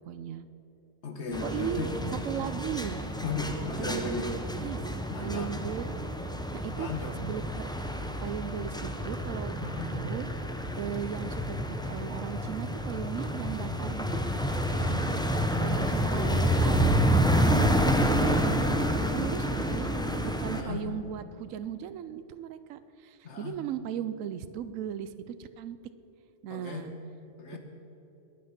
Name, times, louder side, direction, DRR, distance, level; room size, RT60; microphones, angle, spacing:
voice 1, 0.0-0.4 1.4-1.9 2.2-3.0 3.8-4.8 5.2-6.1 6.5-6.9 7.2-7.8 8.2-9.5 9.9-10.3 10.8-14.2 15.6-16.9 17.5-20.0 20.2-25.8 26.4-26.9 27.5-27.6, right 9 dB, 85° right, 12 dB, 1.0 m, -37 dB
voice 2, 1.0-1.9 3.2-4.3 5.1-5.5 6.7-7.1 9.6-9.9 14.7-15.1 15.7-17.6 20.5-20.8 23.2-23.6 26.5-26.9 27.4-27.6, left 3 dB, 60° left, 5 dB, 1.7 m, -37 dB
sound 1, 1.3-20.6, equal, 5° left, 0.5 m, -29 dB
Train, 12.1-12.2 12.6-20.4, equal, 60° right, 4.7 m, -53 dB
21.0 x 8.6 x 5.9 m, 3.0 s
omnidirectional pair, 1.3 m